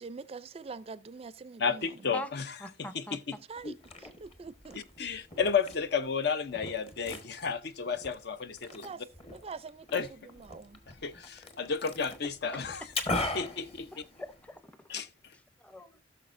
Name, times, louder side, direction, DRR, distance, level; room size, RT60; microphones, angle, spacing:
voice 1, 0.0-1.8 3.5-4.8 8.8-9.0 9.3-10.0 10.3-10.8, right 4 dB, 35° right, 0.4 m, -44 dB
voice 2, 1.6-2.6 2.9-3.4 3.6-3.7 4.7-8.9 9.9-10.1 11.0-12.9 13.3-13.9 14.9-15.1, left 6 dB, 65° left, 0.7 m, -32 dB
voice 3, 2.6-3.2 4.0-4.1 13.9-14.9 15.6-16.0, left 1 dB, 10° left, 0.7 m, -43 dB
Liquid, 3.6-14.6, left 2 dB, 35° left, 1.3 m, -41 dB
16.5 x 6.4 x 2.5 m
head